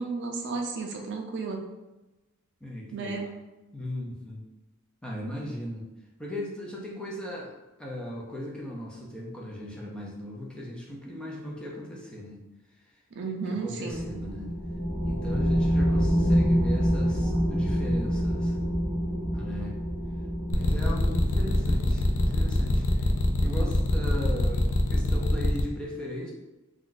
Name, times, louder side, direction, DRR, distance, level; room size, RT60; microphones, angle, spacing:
voice 1, 0.0-1.6 2.9-3.3 13.1-14.1 17.2-17.3, right 4 dB, 55° right, 2 dB, 0.5 m, -33 dB
voice 2, 2.6-3.3 3.7-4.4 5.0-5.9 6.2-12.4 12.8-12.9 13.5-14.5 15.0-18.6 19.3-19.8 20.5-23.1 23.4-26.3, left 1 dB, 5° left, -3 dB, 0.5 m, -38 dB
sound 1, 13.9-23.9, equal, 55° left, 0.8 m, -27 dB
sound 2, 20.5-25.6, left 1 dB, 90° left, 0.4 m, -24 dB
2.6 x 2.3 x 3.8 m, 1.1 s
head